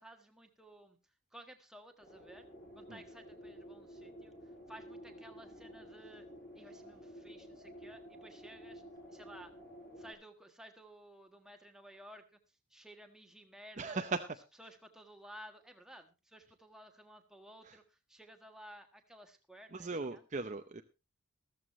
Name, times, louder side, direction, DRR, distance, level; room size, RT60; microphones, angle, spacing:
voice 1, 0.0-2.5 2.7-6.2 6.5-8.8 9.1-9.5 10.0-14.0 14.6-20.2, right 1 dB, ahead, 4 dB, 1.4 m, -55 dB
sound 1, 2.0-10.1, equal, 40° left, 6.7 m, -52 dB
voice 2, 13.8-14.3 17.6-17.8 19.7-20.8, right 3 dB, 35° right, 7 dB, 0.7 m, -38 dB
14.0 x 14.0 x 3.1 m, 0.28 s
head